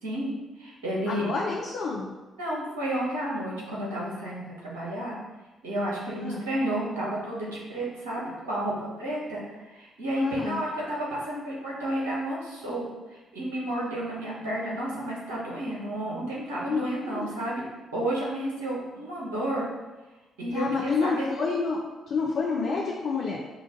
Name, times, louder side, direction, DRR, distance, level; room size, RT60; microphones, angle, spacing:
voice 1, 0.0-1.3 2.4-5.2 5.6-17.6 17.9-19.7 20.4-21.3, right 1 dB, 80° right, -5 dB, 1.2 m, -31 dB
voice 2, 1.1-2.1 6.1-6.4 10.1-10.6 16.6-17.3 20.5-21.8 22.1-23.4, left 4 dB, 55° left, -3 dB, 0.6 m, -29 dB
5.7 x 2.5 x 3.7 m, 1.1 s
figure-of-eight pair, 40°, 0 cm